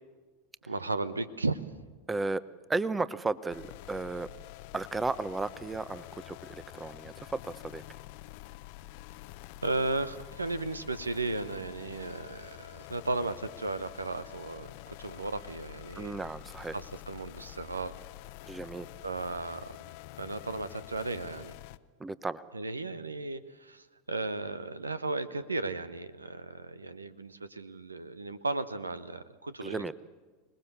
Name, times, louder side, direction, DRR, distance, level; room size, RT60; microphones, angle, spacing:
voice 1, 0.7-1.6 9.6-16.2 16.7-18.0 19.0-19.8 20.2-21.6 22.5-29.9, right 3 dB, 90° right, 15 dB, 1.0 m, -35 dB
voice 2, 2.1-2.4 2.7-4.3 4.7-7.8 15.9-16.8 18.5-18.9 22.0-22.4 29.6-29.9, right 3 dB, 15° right, 17 dB, 0.8 m, -34 dB
sound 1, 3.5-21.8, left 17 dB, 55° left, 0.7 m, -47 dB
26.0 x 19.5 x 7.1 m, 1.4 s
figure-of-eight pair, 85°, 0 cm